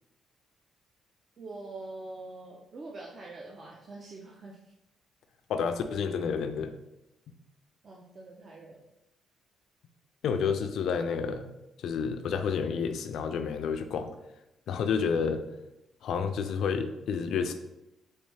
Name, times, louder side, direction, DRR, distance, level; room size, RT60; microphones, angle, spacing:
voice 1, 1.4-4.7 7.8-8.8, right 2 dB, 45° right, -2 dB, 0.5 m, -44 dB
voice 2, 5.5-6.7 10.2-11.5 11.8-14.1 14.7-15.4 16.0-17.5, left 6 dB, 70° left, 7 dB, 0.3 m, -30 dB
3.2 x 3.0 x 3.2 m, 0.92 s
cardioid pair, 90°, 0 cm